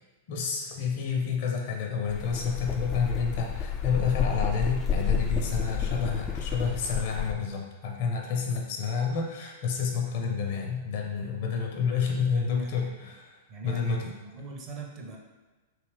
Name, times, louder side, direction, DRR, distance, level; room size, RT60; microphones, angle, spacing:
voice 1, 0.3-14.1, left 6 dB, 50° left, 1 dB, 0.6 m, -29 dB
sound 1, 2.1-7.3, left 6 dB, 25° left, 0.3 m, -30 dB
voice 2, 11.9-12.9 13.5-15.2, right 3 dB, 35° right, 1 dB, 0.6 m, -42 dB
3.2 x 2.7 x 3.4 m, 1.2 s
figure-of-eight pair, 95°, 0 cm